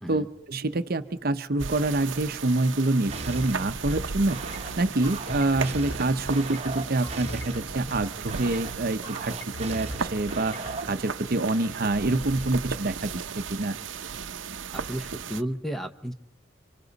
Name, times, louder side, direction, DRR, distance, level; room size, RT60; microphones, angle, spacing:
voice 1, 0.1-4.4 4.8-9.3 9.6-13.8, right 2 dB, 50° right, 10 dB, 0.8 m, -26 dB
sound 1, 1.6-15.4, right 5 dB, 85° right, 0.7 m, -36 dB
sound 2, 3.1-11.0, right 3 dB, 35° right, 1.2 m, -38 dB
sound 3, 3.6-10.8, left 1 dB, 85° left, 3.1 m, -42 dB
voice 2, 14.7-16.1, equal, ahead, 7 dB, 0.9 m, -33 dB
29.0 x 25.0 x 4.1 m, 0.84 s
head